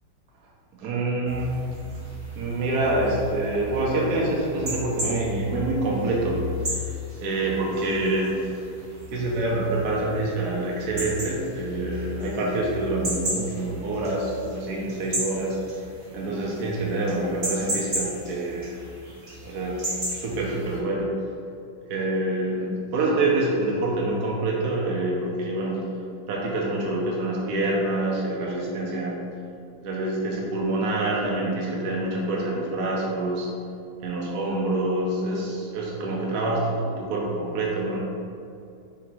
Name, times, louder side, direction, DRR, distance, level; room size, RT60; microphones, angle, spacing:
voice 1, 0.8-1.6 2.3-6.4 6.7-6.9 7.2-8.5 9.1-15.6 16.1-18.8 19.4-21.1 21.9-25.9 26.3-29.2 29.8-33.5 34.0-38.0, right 2 dB, 60° right, -3 dB, 1.3 m, -26 dB
sound 1, 1.3-20.8, equal, 35° right, 1.7 m, -35 dB
6.8 x 2.9 x 4.8 m, 2.5 s
omnidirectional pair, 2.1 m